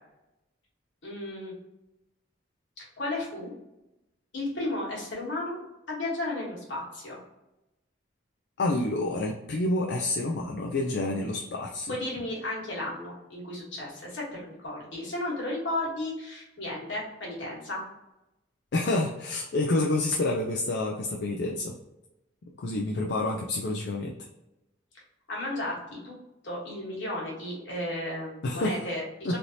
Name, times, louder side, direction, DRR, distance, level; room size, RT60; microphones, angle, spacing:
voice 1, 1.0-1.5 2.8-3.5 4.3-5.6 5.9-7.2 11.9-17.8 25.3-26.1 26.4-29.4, left 1 dB, 75° left, -4 dB, 1.4 m, -34 dB
voice 2, 8.6-11.9 18.7-21.7 22.6-24.1 28.4-28.8 29.2-29.4, left 2 dB, 60° left, 0 dB, 0.4 m, -28 dB
3.2 x 2.6 x 2.8 m, 0.94 s
head